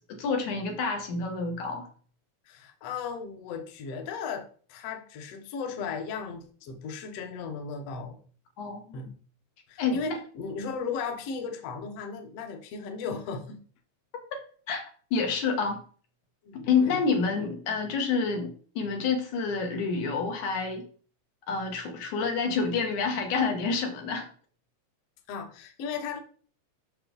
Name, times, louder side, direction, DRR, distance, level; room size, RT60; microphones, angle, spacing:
voice 1, 0.2-1.9 8.6-8.9 9.8-10.2 14.3-14.4 14.7-15.8 16.5-20.9 21.5-24.3, left 5 dB, 80° left, 3 dB, 2.7 m, -28 dB
voice 2, 2.5-8.2 8.9-9.1 9.7-13.6 16.4-17.0 17.3-17.5 25.3-26.2, left 5 dB, 65° left, 5 dB, 1.8 m, -36 dB
7.2 x 6.0 x 3.9 m, 0.43 s
omnidirectional pair, 3.3 m